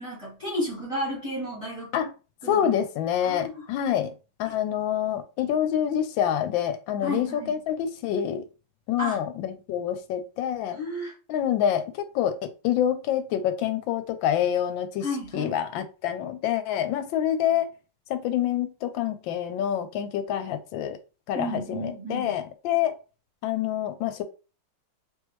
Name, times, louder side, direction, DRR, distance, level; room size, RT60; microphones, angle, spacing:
voice 1, 0.0-1.9 2.4-2.7 3.2-3.6 4.4-4.6 7.0-7.6 9.0-9.2 10.7-11.1 15.0-15.6 21.3-22.3, equal, 20° right, 1.3 m, -32 dB
voice 2, 2.5-4.1 4.4-8.5 8.9-10.8 11.3-15.1 15.3-17.7 18.1-21.0 21.3-22.9 23.4-24.2, left 10 dB, 85° left, 1.3 m, -27 dB
3.6 x 3.0 x 3.1 m
omnidirectional pair, 2.0 m